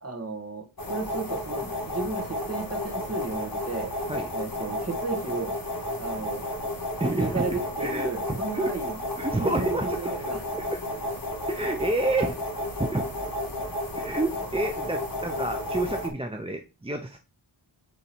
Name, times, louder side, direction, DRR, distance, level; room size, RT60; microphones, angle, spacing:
voice 1, 0.0-3.9 4.3-5.5 6.0-6.4 7.1-9.0 9.4-10.4, right 3 dB, 30° right, 3 dB, 1.8 m, -33 dB
sound 1, 0.8-16.1, left 1 dB, 45° left, 1.9 m, -32 dB
voice 2, 7.0-8.7 9.2-10.1 10.7-10.8 11.5-12.4 12.8-13.0 14.0-17.2, right 2 dB, 10° right, 5 dB, 0.6 m, -29 dB
8.7 x 3.8 x 4.5 m, 0.31 s
wide cardioid pair, 100°, 49 cm